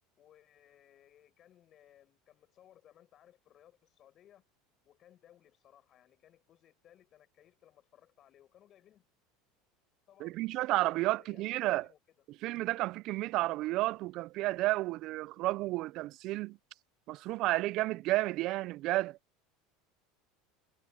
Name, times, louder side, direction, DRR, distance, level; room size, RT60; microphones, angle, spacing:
voice 1, 0.2-4.4 4.8-9.1 10.1-12.0, left 11 dB, 35° left, 5.6 m, -62 dB
voice 2, 10.2-11.9 12.4-16.6 17.1-19.2, right 18 dB, 50° right, 0.3 m, -31 dB
supercardioid pair, 145°, 0 cm